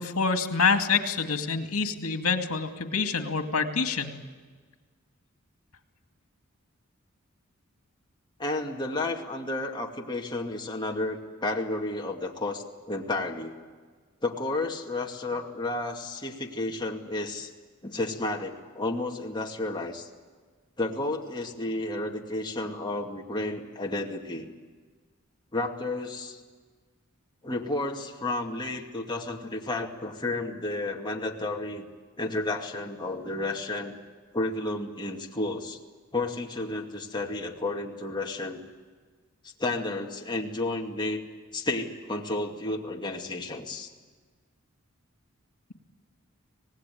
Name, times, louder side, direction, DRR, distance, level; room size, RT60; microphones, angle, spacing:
voice 1, 0.0-4.1, left 5 dB, 80° left, 6 dB, 2.3 m, -26 dB
voice 2, 8.4-13.5 14.2-17.5 17.8-20.1 20.8-24.5 25.5-26.4 27.4-31.9 32.2-34.0 34.3-35.8 36.1-38.6 39.4-41.2 41.5-43.9, left 2 dB, 20° left, 0 dB, 2.4 m, -32 dB
25.5 x 19.0 x 9.4 m, 1.5 s
head